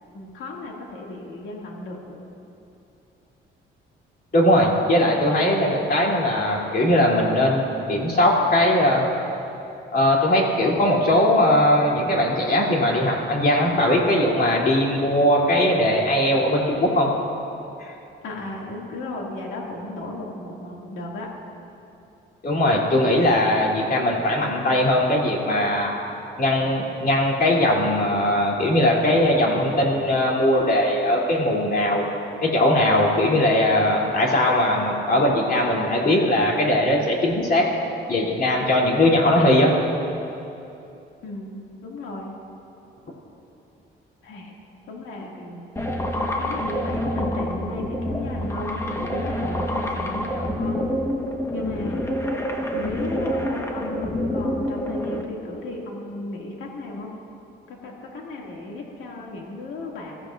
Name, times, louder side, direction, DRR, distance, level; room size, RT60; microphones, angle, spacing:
voice 1, 0.1-2.2 18.2-21.3 41.2-42.4 44.2-44.5 44.9-45.7 46.4-50.8 51.5-52.1 52.7-57.1 57.7-60.3, left 2 dB, 85° left, -2 dB, 2.4 m, -35 dB
voice 2, 4.3-7.6 7.9-9.1 9.9-17.1 17.8-17.9 22.4-25.9 26.4-32.0 32.4-37.7 38.1-39.7, left 1 dB, 50° left, -3 dB, 3.1 m, -20 dB
sound 1, 45.8-55.2, left 1 dB, 15° left, 1.3 m, -27 dB
21.5 x 15.0 x 2.6 m, 2.8 s
cardioid pair, 90°, 20 cm